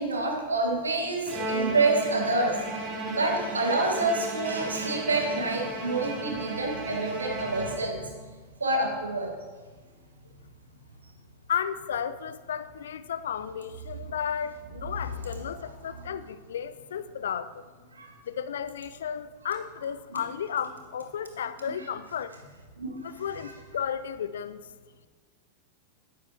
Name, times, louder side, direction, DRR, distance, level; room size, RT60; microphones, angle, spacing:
voice 1, 0.0-8.0 8.6-9.3 15.0-15.9 17.9-18.1 20.1-20.2 21.8-21.9 22.8-23.0 23.4-23.5, right 2 dB, 75° right, 2 dB, 1.4 m, -28 dB
Bowed string instrument, 1.3-8.2, right 2 dB, 30° right, 1.8 m, -34 dB
voice 2, 11.5-17.6 18.3-22.3 23.0-24.6, left 8 dB, 65° left, 14 dB, 0.3 m, -33 dB
10.5 x 9.7 x 2.7 m, 1.4 s
figure-of-eight pair, 90°, 0 cm